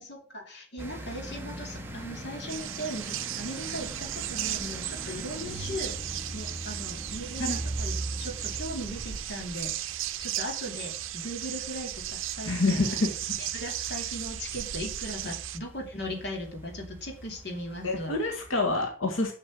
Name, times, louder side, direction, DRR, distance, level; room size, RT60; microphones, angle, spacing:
voice 1, 0.0-6.0 6.3-13.0 13.4-18.2, equal, 55° left, 1 dB, 3.1 m, -38 dB
sound 1, 0.8-18.8, right 1 dB, 10° right, 1.4 m, -41 dB
sound 2, 2.5-15.6, right 12 dB, 80° right, 0.7 m, -36 dB
voice 2, 12.4-13.1 17.8-19.3, left 2 dB, 85° left, 2 dB, 2.0 m, -27 dB
7.6 x 7.0 x 7.7 m, 0.41 s
head